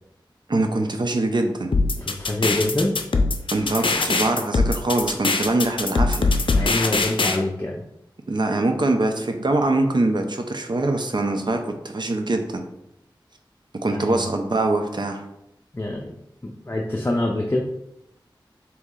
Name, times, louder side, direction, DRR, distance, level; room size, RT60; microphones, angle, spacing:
voice 1, 0.5-1.7 3.5-6.3 8.3-12.6 13.8-15.2, right 2 dB, 60° right, 4 dB, 0.6 m, -23 dB
sound 1, 1.7-7.4, left 3 dB, 80° left, 0.4 m, -21 dB
voice 2, 2.0-2.9 6.5-7.8 13.9-14.2 15.7-16.1 16.4-17.6, left 1 dB, 30° left, -1 dB, 0.5 m, -25 dB
4.1 x 2.9 x 3.7 m, 0.85 s
wide cardioid pair, 50°, 9 cm